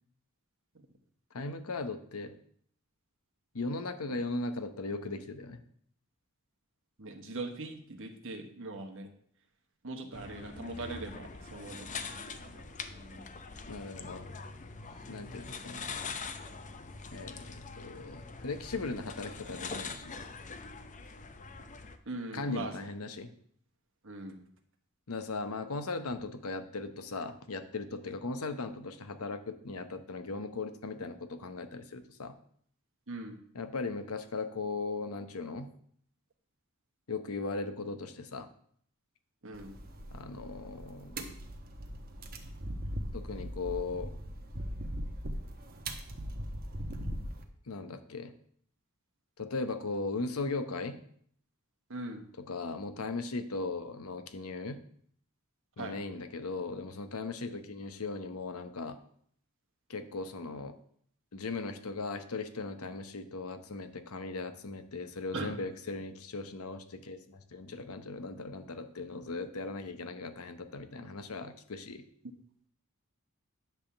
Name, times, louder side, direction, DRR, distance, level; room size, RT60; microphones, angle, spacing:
voice 1, 1.3-2.3 3.5-5.6 13.7-14.3 15.1-15.9 17.1-20.1 22.3-23.3 25.1-32.3 33.5-35.7 37.1-38.5 40.1-41.2 43.1-44.1 47.7-48.3 49.4-51.0 52.4-54.8 55.8-59.0 59.9-60.7 61.3-72.0, left 3 dB, 75° left, 9 dB, 0.9 m, -38 dB
voice 2, 7.0-9.1 9.8-12.6 12.9-13.2 22.1-22.9 24.0-24.5 33.1-33.4 39.4-39.7 41.2-41.3 51.9-52.2 55.8-56.0 65.3-65.6, right 2 dB, 60° right, 5 dB, 1.2 m, -41 dB
sound 1, 10.1-22.0, left 4 dB, 35° left, 0.6 m, -43 dB
sound 2, 39.5-47.4, equal, 45° right, 1.0 m, -40 dB
10.0 x 3.5 x 7.1 m, 0.63 s
head